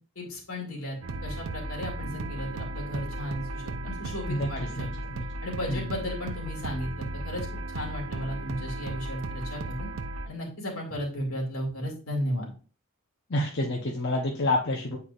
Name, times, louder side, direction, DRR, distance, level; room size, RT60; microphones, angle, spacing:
voice 1, 0.2-1.0 1.2-4.9 5.4-9.9 10.2-12.5, left 1 dB, 80° left, 0 dB, 2.3 m, -34 dB
sound 1, 1.0-10.3, right 2 dB, 80° right, 0.6 m, -35 dB
voice 2, 4.8-5.3 5.7-5.8 13.3-15.0, left 1 dB, 55° left, -1 dB, 0.9 m, -28 dB
8.1 x 4.7 x 2.5 m, 0.37 s
head